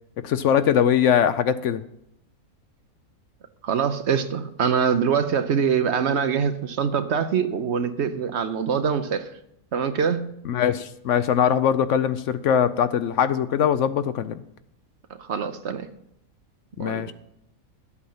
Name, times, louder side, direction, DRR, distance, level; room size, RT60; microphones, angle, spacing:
voice 1, 0.2-1.8 10.5-14.4 16.8-17.1, left 8 dB, 65° left, 12 dB, 0.8 m, -21 dB
voice 2, 3.6-9.3 9.7-10.2 15.2-15.9 16.8-17.1, right 7 dB, 60° right, 10 dB, 0.9 m, -24 dB
11.5 x 8.4 x 5.7 m, 0.79 s
omnidirectional pair, 1.5 m